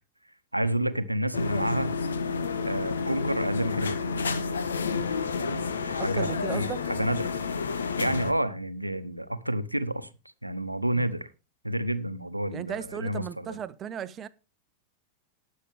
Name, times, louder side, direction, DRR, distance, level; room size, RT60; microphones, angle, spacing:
voice 1, 0.5-1.9 2.6-4.3 5.0-7.3 8.0-10.1 10.4-11.3 11.6-13.6, right 1 dB, 85° right, 1.0 m, -30 dB
sound 1, 1.3-8.3, left 5 dB, 70° left, 1.2 m, -30 dB
voice 2, 6.0-6.8 10.9-11.1 12.5-14.3, right 9 dB, 25° right, 0.8 m, -36 dB
19.0 x 6.5 x 3.5 m
figure-of-eight pair, 90°, 0 cm